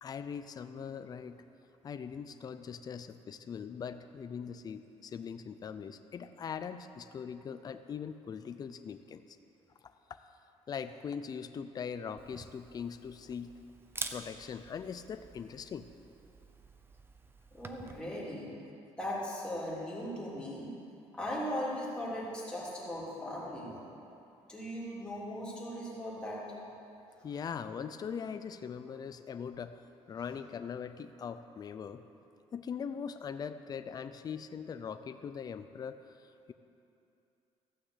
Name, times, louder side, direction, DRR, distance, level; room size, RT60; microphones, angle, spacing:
voice 1, 0.0-1.4 1.8-9.2 10.7-13.5 14.1-15.9 27.2-29.8 30.1-32.0 32.5-36.0, left 7 dB, 35° left, 10 dB, 0.5 m, -41 dB
Camera, 12.2-18.0, right 3 dB, 20° right, 0.7 m, -47 dB
voice 2, 17.5-18.5 19.0-20.7 21.1-23.9 24.5-26.6, equal, 10° left, -7 dB, 3.3 m, -38 dB
14.5 x 6.4 x 8.1 m, 2.8 s
cardioid pair, 140°, 12 cm